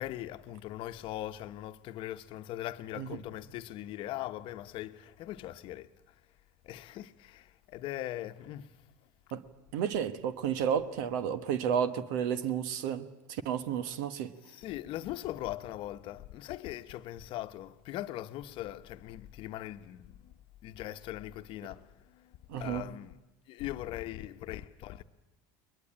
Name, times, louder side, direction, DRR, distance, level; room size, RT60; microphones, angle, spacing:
voice 1, 0.0-5.9 6.6-8.7 14.5-20.3 20.6-23.1 23.5-25.0, left 14 dB, 60° left, 0.9 m, -40 dB
voice 2, 9.7-14.3 22.5-22.8, right 8 dB, 80° right, 1.2 m, -32 dB
22.0 x 21.0 x 8.6 m
supercardioid pair, 95°, 10 cm